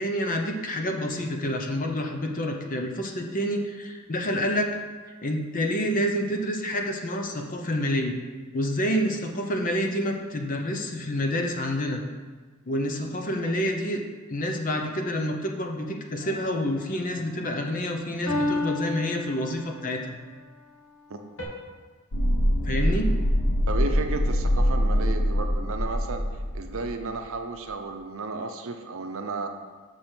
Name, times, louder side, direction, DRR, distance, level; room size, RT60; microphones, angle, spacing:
voice 1, 0.0-4.8 5.2-8.2 8.5-12.0 12.7-14.0 14.3-20.1 22.6-23.1, equal, 40° left, 3 dB, 0.8 m, -28 dB
sound 1, 16.2-16.9 18.3-19.9 21.4-21.5, left 2 dB, 60° left, 1.7 m, -31 dB
sound 2, 22.1-27.0 27.3-27.4, equal, 90° left, 1.1 m, -24 dB
voice 2, 23.7-26.2 26.5-29.5, right 3 dB, 65° right, 6 dB, 0.7 m, -33 dB
6.7 x 6.2 x 4.5 m, 1.4 s
head